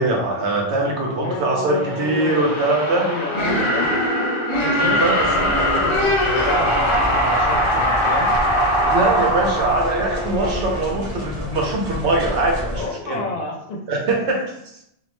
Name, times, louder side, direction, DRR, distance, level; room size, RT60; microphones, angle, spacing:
voice 1, 0.0-3.1 4.7-5.3 8.9-13.2 13.9-14.5, right 2 dB, 80° right, 0 dB, 1.0 m, -22 dB
voice 2, 1.1-2.6 2.9-4.0 4.6-8.3 12.7-13.8, left 2 dB, 75° left, 0 dB, 0.8 m, -29 dB
sound 1, 1.8-10.6, equal, 30° left, 0.7 m, -21 dB
sound 2, 5.2-12.8, equal, 40° right, 0.8 m, -31 dB
Bowed string instrument, 7.7-10.9, left 1 dB, 50° left, 1.1 m, -36 dB
2.5 x 2.1 x 2.9 m, 0.76 s
omnidirectional pair, 1.1 m